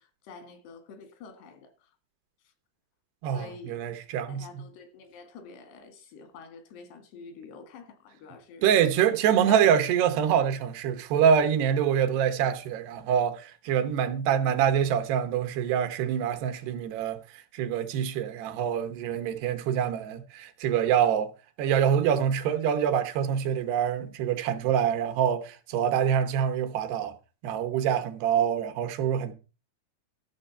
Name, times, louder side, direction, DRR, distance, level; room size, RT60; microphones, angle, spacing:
voice 1, 0.0-1.7 3.3-3.8 4.3-8.7 9.5-9.7, left 5 dB, 90° left, 3.9 m, -47 dB
voice 2, 3.2-4.6 8.6-17.2 17.5-21.3 21.6-27.1 27.4-29.3, right 8 dB, 80° right, 3.1 m, -25 dB
13.0 x 6.4 x 5.5 m
omnidirectional pair, 4.7 m